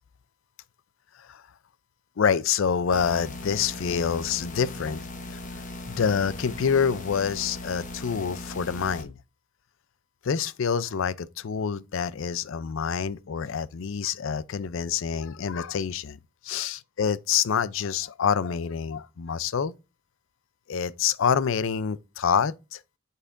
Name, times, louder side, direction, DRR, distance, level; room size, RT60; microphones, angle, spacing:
voice 1, 2.2-5.4 5.9-9.2 10.2-19.7 20.7-22.8, left 7 dB, 65° left, 0.4 m, -27 dB
sound 1, 2.9-9.0, left 2 dB, 35° left, 1.0 m, -39 dB
8.1 x 5.6 x 2.5 m
head